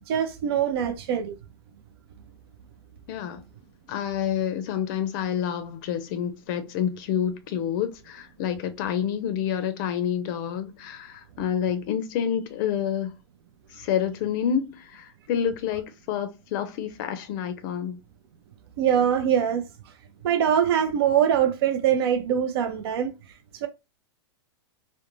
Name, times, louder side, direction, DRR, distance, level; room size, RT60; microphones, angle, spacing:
voice 1, 0.1-1.3 18.8-19.7 20.2-23.1 23.6-23.7, right 9 dB, 65° right, 0.5 m, -23 dB
voice 2, 3.1-3.4 3.9-13.1 13.7-18.0, left 9 dB, 50° left, 0.5 m, -28 dB
2.4 x 2.1 x 2.9 m
hypercardioid pair, 125°, 14 cm